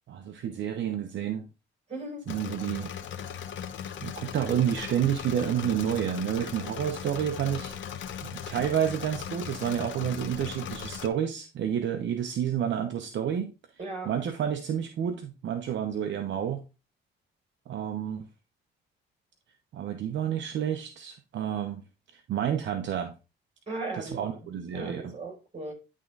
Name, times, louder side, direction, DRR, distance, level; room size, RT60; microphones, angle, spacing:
voice 1, 0.1-1.5 2.3-2.9 4.0-7.7 8.2-13.5 14.1-16.6 17.7-18.2 19.7-21.8 22.1-23.1 24.0-25.1, right 9 dB, 65° right, 0.9 m, -30 dB
voice 2, 1.9-2.2 13.8-14.1 23.7-25.7, right 2 dB, 35° right, 5.1 m, -37 dB
Engine / Mechanisms, 2.3-11.1, left 8 dB, 70° left, 1.1 m, -38 dB
11.0 x 3.7 x 3.9 m
cardioid pair, 90°, 20 cm